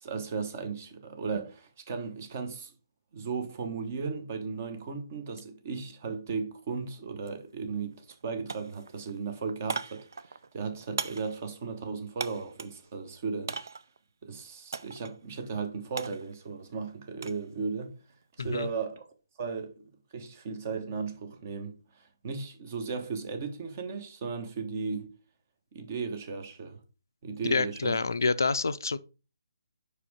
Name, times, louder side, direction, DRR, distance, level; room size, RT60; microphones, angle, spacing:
voice 1, 0.0-2.7 3.1-13.5 14.2-17.9 18.4-19.0 19.4-19.8 20.1-25.1 25.7-26.8 27.2-28.0, right 5 dB, 40° right, 1.2 m, -36 dB
sound 1, 7.2-7.4 7.7-8.2 8.5-12.8 13.5-14.0 14.7-15.2 15.5-17.5 17.8-18.2, right 4 dB, 60° right, 0.5 m, -39 dB
voice 2, 18.4-18.7 27.4-29.0, left 4 dB, 65° left, 0.4 m, -27 dB
5.0 x 5.0 x 4.7 m
figure-of-eight pair, 140°, 2 cm